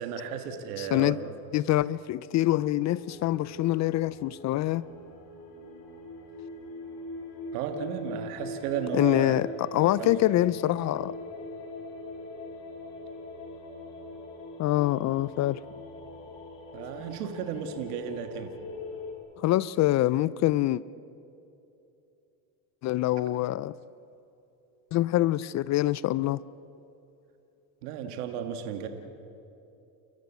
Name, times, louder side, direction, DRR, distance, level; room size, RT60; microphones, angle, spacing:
voice 1, 0.0-1.3 7.5-9.4 9.9-10.1 16.7-18.5 27.8-28.9, right 7 dB, 85° right, 7 dB, 1.9 m, -34 dB
voice 2, 0.8-1.2 1.5-4.8 8.9-11.1 14.6-15.6 19.4-20.8 22.8-23.7 24.9-26.4, left 15 dB, 40° left, 20 dB, 0.4 m, -25 dB
sound 1, 2.9-19.1, left 2 dB, 70° left, 4.4 m, -42 dB
30.0 x 14.0 x 8.4 m, 2.8 s
supercardioid pair, 110°, 45 cm